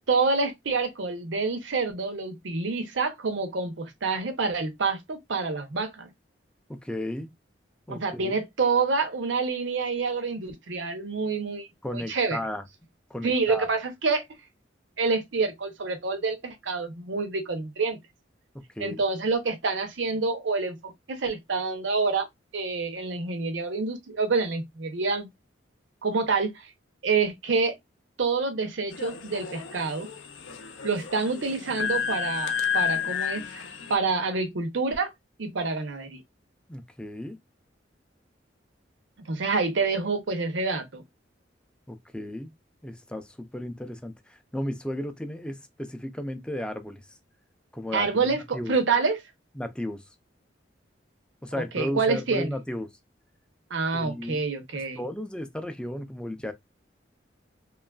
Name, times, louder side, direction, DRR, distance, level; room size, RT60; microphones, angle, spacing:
voice 1, 0.1-6.1 7.9-11.7 11.9-12.4 13.2-14.2 15.0-18.0 18.8-22.3 22.5-25.3 26.0-26.7 27.0-27.7 28.2-30.1 30.8-35.1 35.4-36.2 39.3-41.0 47.9-49.2 51.7-52.5 53.7-55.0, right 4 dB, 90° right, 0.7 m, -27 dB
voice 2, 6.7-7.3 7.9-8.3 11.8-12.6 13.1-13.7 18.8-19.0 36.7-37.4 41.9-42.5 42.8-47.0 47.7-48.1 48.5-48.7 49.6-50.0 51.4-52.9 53.9-54.4 55.0-56.5, left 1 dB, 5° left, 0.3 m, -34 dB
sound 1, 28.9-34.0, left 7 dB, 85° left, 0.5 m, -31 dB
2.9 x 2.3 x 2.3 m
head